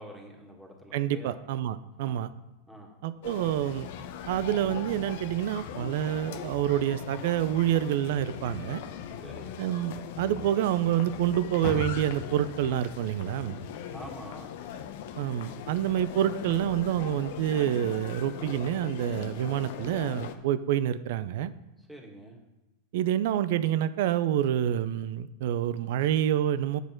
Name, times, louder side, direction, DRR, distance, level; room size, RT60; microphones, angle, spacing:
voice 1, 0.0-1.3 2.0-2.3 2.7-2.9 9.2-9.6 13.9-14.5 21.8-22.4, equal, 5° right, 0 dB, 2.0 m, -46 dB
voice 2, 0.9-2.3 3.0-3.9 4.3-8.8 9.6-13.6 15.2-21.5 22.9-26.8, right 11 dB, 65° right, 15 dB, 0.5 m, -27 dB
sound 1, 3.2-20.4, left 9 dB, 65° left, 0.7 m, -40 dB
Car, 11.6-14.9 15.3-16.6 17.1-17.2 17.8-17.9, left 3 dB, 45° left, 1.3 m, -41 dB
8.1 x 6.3 x 4.5 m, 1.0 s
hypercardioid pair, 105°, 0 cm